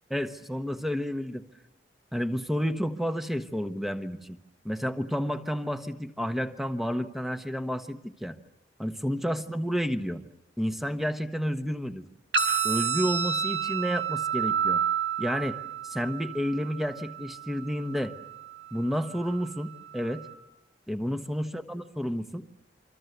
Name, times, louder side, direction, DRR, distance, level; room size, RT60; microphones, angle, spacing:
voice 1, 0.1-1.4 2.1-4.4 4.6-8.4 8.8-10.2 10.6-12.0 12.6-14.8 15.2-15.6 15.8-18.1 18.7-20.3 20.9-22.4, equal, ahead, 9 dB, 1.2 m, -30 dB
sound 1, 12.3-20.3, right 7 dB, 85° right, 4.7 m, -31 dB
28.0 x 25.0 x 8.0 m, 0.88 s
head